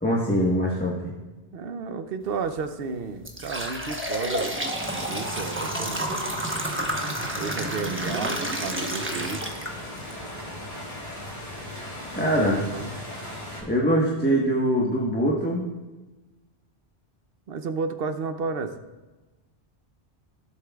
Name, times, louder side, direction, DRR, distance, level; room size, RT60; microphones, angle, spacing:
voice 1, 0.0-1.1 12.1-12.6 13.6-15.7, equal, 10° left, -5 dB, 1.2 m, -23 dB
voice 2, 1.5-4.6 5.1-6.1 7.4-9.4 12.2-13.0 17.5-18.7, right 4 dB, 65° right, 9 dB, 0.9 m, -32 dB
sound 1, 2.3-2.5 3.0-10.1 10.6-10.7 11.5-11.6 12.1-12.2 12.7-12.9, right 1 dB, 10° right, 1.0 m, -30 dB
sound 2, 4.7-13.6, left 1 dB, 45° left, 3.6 m, -37 dB
16.5 x 8.0 x 2.3 m, 1.1 s
omnidirectional pair, 1.1 m